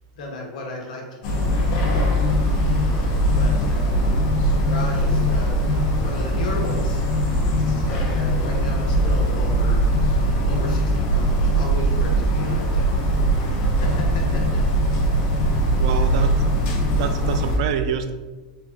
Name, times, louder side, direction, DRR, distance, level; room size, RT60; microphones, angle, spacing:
voice 1, 0.1-1.7 2.6-2.9 3.3-4.1 4.5-7.0 7.9-9.8 10.5-12.9 13.6-14.6 15.3-15.7, left 2 dB, 75° left, -1 dB, 1.3 m, -34 dB
sound 1, 1.2-17.6, right 1 dB, 40° left, 0.9 m, -20 dB
voice 2, 15.8-16.4 16.9-18.1, right 7 dB, 55° right, 8 dB, 0.4 m, -26 dB
4.7 x 3.9 x 2.7 m, 1.2 s
supercardioid pair, 170°, 4 cm